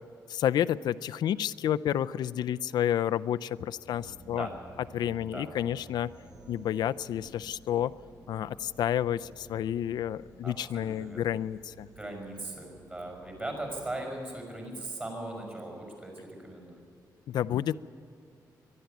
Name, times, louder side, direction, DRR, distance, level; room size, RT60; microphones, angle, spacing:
voice 1, 0.3-4.5 4.9-6.1 6.5-7.9 8.3-11.9 17.3-17.8, left 10 dB, 85° left, 14 dB, 0.4 m, -30 dB
sound 1, 3.8-14.0, right 2 dB, 75° right, 2.8 m, -54 dB
voice 2, 4.2-4.5 5.1-5.5 10.4-11.4 11.9-16.8, right 1 dB, 20° right, 1 dB, 5.8 m, -39 dB
23.0 x 12.0 x 9.4 m, 2.6 s
wide cardioid pair, 180°, 7 cm